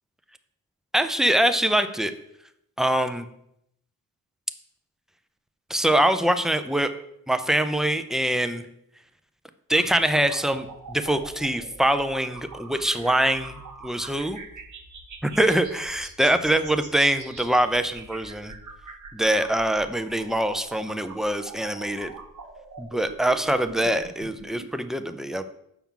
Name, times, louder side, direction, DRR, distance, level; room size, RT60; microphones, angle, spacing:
voice 1, 0.9-2.1 2.8-3.3 5.7-6.9 7.3-8.6 9.7-14.4 15.4-18.5 19.1-22.1 22.8-25.4, right 1 dB, ahead, 9 dB, 0.3 m, -24 dB
sound 1, 9.7-24.7, right 4 dB, 55° right, 1.0 m, -44 dB
7.1 x 5.8 x 3.7 m, 0.76 s
wide cardioid pair, 115°, 36 cm